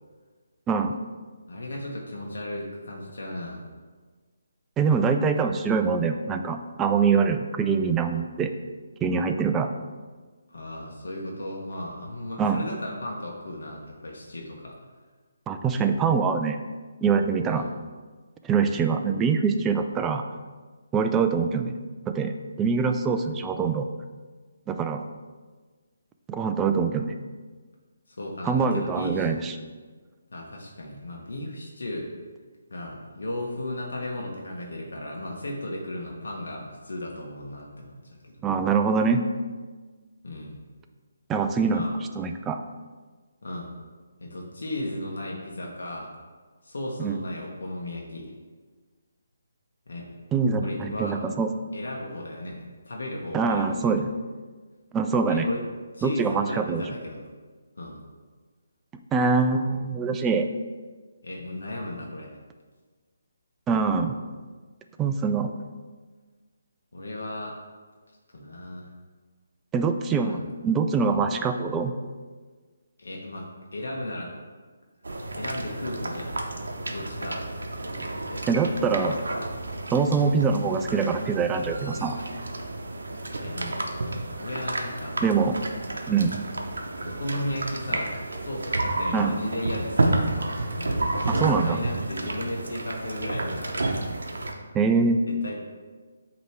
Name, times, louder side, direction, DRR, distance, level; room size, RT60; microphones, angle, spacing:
voice 1, 1.5-3.7 10.5-14.7 17.4-17.7 28.1-29.5 30.3-32.1 32.7-38.0 38.2-38.4 40.2-40.6 41.6-41.9 43.4-43.7 44.2-46.1 46.6-48.3 49.9-50.1 50.6-51.2 51.7-54.0 55.3-55.6 55.9-57.2 57.8-58.0 61.2-62.4 66.9-67.6 68.3-68.9 70.1-70.4 73.0-73.5 73.7-74.3 75.4-76.5 76.9-77.5 77.8-78.5 83.3-83.9 84.4-85.2 87.0-90.2 90.7-93.9 95.4-95.6, left 1 dB, 70° left, -2 dB, 1.1 m, -35 dB
voice 2, 4.8-8.5 9.0-9.7 12.4-12.6 15.5-16.6 17.0-17.6 18.4-20.2 20.9-21.8 22.1-23.9 24.7-25.0 26.3-27.1 28.4-29.5 38.4-39.2 41.3-41.9 42.2-42.6 47.0-47.2 50.3-51.5 53.3-54.1 54.9-55.5 56.0-56.8 59.1-60.5 63.7-64.2 65.0-65.5 69.7-70.4 70.6-71.9 78.5-79.2 79.9-82.2 85.2-85.6 86.1-86.4 89.1-89.3 91.4-91.8 94.7-95.2, right 5 dB, 15° right, 6 dB, 0.3 m, -24 dB
sound 1, 75.0-94.5, right 2 dB, 75° right, 0.8 m, -31 dB
8.1 x 3.0 x 4.5 m, 1.4 s
figure-of-eight pair, 150°, 0 cm